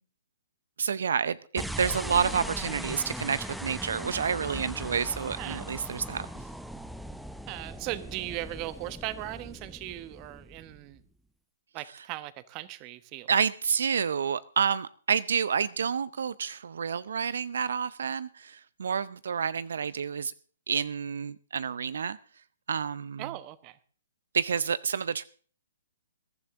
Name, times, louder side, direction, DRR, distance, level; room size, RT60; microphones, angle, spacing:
voice 1, 0.8-6.3 13.3-20.3 20.7-22.2 22.7-23.3 24.3-25.2, right 7 dB, 70° right, 0.6 m, -29 dB
sound 1, 1.6-11.0, equal, ahead, 0.9 m, -39 dB
voice 2, 5.2-5.6 7.5-11.0 11.7-13.3 23.2-23.8, right 16 dB, 30° right, 1.1 m, -38 dB
21.5 x 11.5 x 3.7 m
hypercardioid pair, 145°, 0 cm